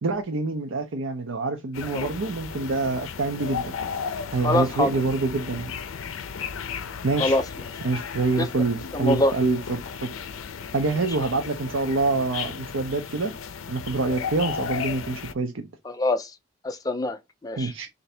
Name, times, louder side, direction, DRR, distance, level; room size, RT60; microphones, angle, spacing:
voice 1, 0.0-3.7 4.3-5.7 7.0-7.4 7.8-10.1 10.7-13.3 13.7-15.7 17.6-17.9, right 3 dB, 80° right, 0.6 m, -26 dB
sound 1, 1.7-15.3, left 6 dB, 90° left, 0.5 m, -35 dB
voice 2, 4.4-4.9 7.2-7.4 8.4-8.5 8.9-9.3 15.8-16.3 16.6-17.7, left 2 dB, 20° left, 0.4 m, -24 dB
3.3 x 2.6 x 4.2 m
head